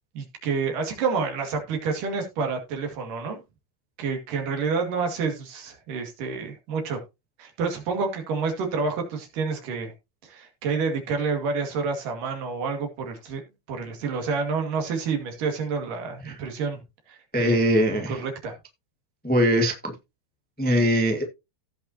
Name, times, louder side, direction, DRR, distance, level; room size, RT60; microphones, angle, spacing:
voice 1, 0.2-3.4 4.0-7.0 7.4-9.9 10.2-13.4 13.7-16.8 17.1-18.6, right 5 dB, 90° right, 3.8 m, -29 dB
voice 2, 17.3-18.2 19.2-19.9 20.6-21.2, equal, 15° left, 0.3 m, -21 dB
16.0 x 5.7 x 2.8 m
omnidirectional pair, 3.7 m